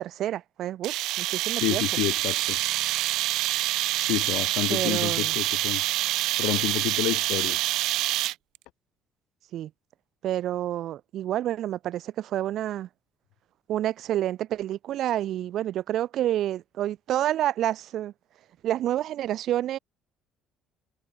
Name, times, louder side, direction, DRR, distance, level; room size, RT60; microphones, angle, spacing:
voice 1, 0.0-1.9 4.7-5.4 9.5-9.7 10.2-12.9 13.7-18.1 18.6-19.8, right 12 dB, 55° right, 4.0 m, -29 dB
sound 1, 0.8-8.6, right 17 dB, 70° right, 3.5 m, -26 dB
voice 2, 1.6-2.6 4.1-5.8 6.4-7.6, left 20 dB, 90° left, 2.7 m, -29 dB
cardioid pair, 150°, 0 cm